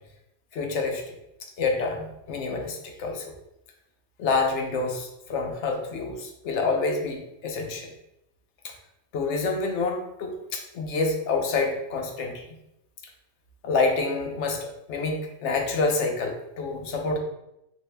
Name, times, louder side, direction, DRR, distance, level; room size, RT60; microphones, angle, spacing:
voice 1, 0.5-1.1 1.6-3.3 4.2-7.9 9.1-12.4 13.6-17.2, left 3 dB, 70° left, 3 dB, 0.9 m, -27 dB
3.5 x 2.5 x 3.2 m, 0.85 s
omnidirectional pair, 1.3 m